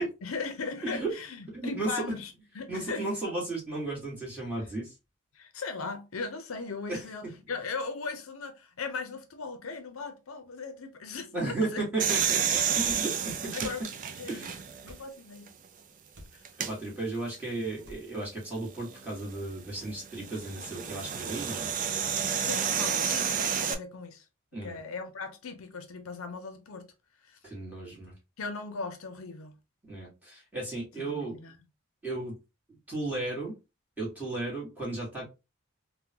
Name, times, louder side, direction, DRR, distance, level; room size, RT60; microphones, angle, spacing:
voice 1, 0.2-3.1 5.3-11.9 13.5-13.8 14.2-14.5 14.8-15.5 16.4-16.5 22.4-24.3 24.6-26.9 27.2-27.4 28.4-29.6 31.0-31.6, left 4 dB, 70° left, 0.6 m, -38 dB
voice 2, 1.5-2.0 2.7-4.9 6.9-7.3 11.3-13.6 14.3-14.5 16.6-21.7 24.5-24.8 27.4-28.1 29.8-31.4 32.0-32.4 32.7-33.5 34.0-35.3, right 2 dB, 10° right, 1.6 m, -34 dB
sound 1, 12.0-14.9 15.5-15.6 16.4-16.7 18.9-23.7, right 7 dB, 40° right, 0.4 m, -30 dB
sound 2, 12.8-13.1 13.6-13.8 14.8-15.1 16.1-16.4 17.8-18.0, equal, 55° right, 0.9 m, -48 dB
3.6 x 2.2 x 2.8 m
head